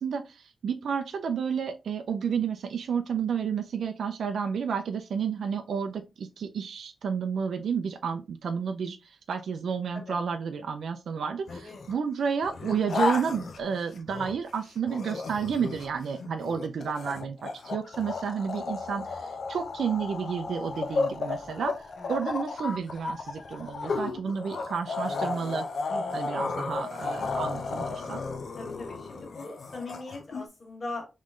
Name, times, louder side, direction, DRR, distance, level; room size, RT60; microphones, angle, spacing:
voice 1, 0.0-25.7 26.1-28.2, right 6 dB, 85° right, 5 dB, 0.4 m, -31 dB
sound 1, 11.5-11.9 12.4-14.5 14.9-30.5, left 4 dB, 70° left, 0.6 m, -34 dB
voice 2, 11.5-11.9 18.6-18.7 22.0-22.1 25.9-26.6 28.6-31.1, left 2 dB, 45° left, 1 dB, 1.9 m, -41 dB
3.7 x 3.1 x 3.7 m, 0.26 s
cardioid pair, 80°, 0 cm